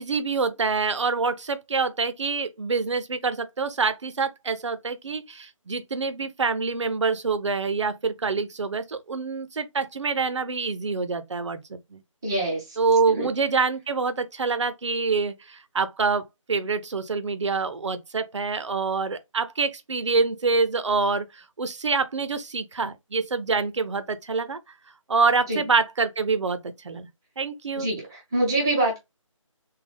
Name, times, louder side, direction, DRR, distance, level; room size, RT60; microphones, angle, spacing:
voice 1, 0.0-12.0 12.8-24.6 25.1-27.1 27.4-27.9, right 4 dB, 60° right, 0.6 m, -26 dB
voice 2, 12.2-12.6 13.2-13.3 25.5-25.6 27.8-29.0, right 1 dB, 5° right, 0.5 m, -25 dB
3.6 x 2.3 x 3.4 m
figure-of-eight pair, 160°, 17 cm